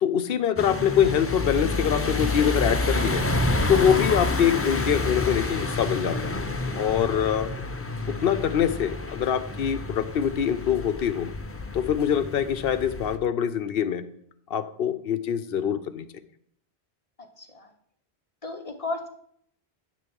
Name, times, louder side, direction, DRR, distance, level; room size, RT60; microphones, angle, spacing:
voice 1, 0.0-3.3 3.7-6.4 6.8-7.5 8.2-11.3 11.7-14.1 14.5-16.1, left 9 dB, 65° left, 13 dB, 0.8 m, -24 dB
sound 1, 0.6-13.2, left 2 dB, 20° left, 0.4 m, -29 dB
voice 2, 6.8-7.3 17.2-17.7 18.4-19.1, left 3 dB, 35° left, 5 dB, 0.9 m, -36 dB
10.0 x 3.4 x 7.0 m, 0.68 s
omnidirectional pair, 1.1 m